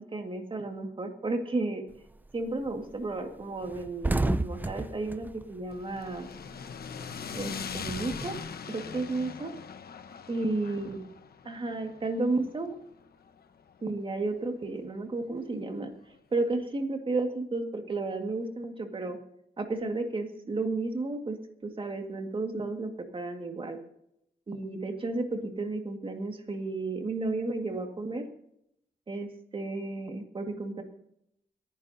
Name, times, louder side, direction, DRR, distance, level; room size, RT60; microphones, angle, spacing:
voice 1, 0.0-1.8 2.3-6.3 7.3-8.4 8.7-9.5 10.3-11.0 11.5-12.7 13.8-15.9 16.3-19.2 19.6-21.4 21.6-23.8 24.5-28.2 29.1-30.8, right 2 dB, 35° right, 4 dB, 1.9 m, -32 dB
sound 1, 1.9-2.3 2.7-2.8 3.1-3.2 3.5-6.5 6.8-8.5, right 2 dB, 10° right, 0.4 m, -32 dB
sound 2, 5.7-14.0, left 6 dB, 75° left, 1.1 m, -41 dB
30.0 x 9.9 x 2.8 m, 0.76 s
wide cardioid pair, 155°, 16 cm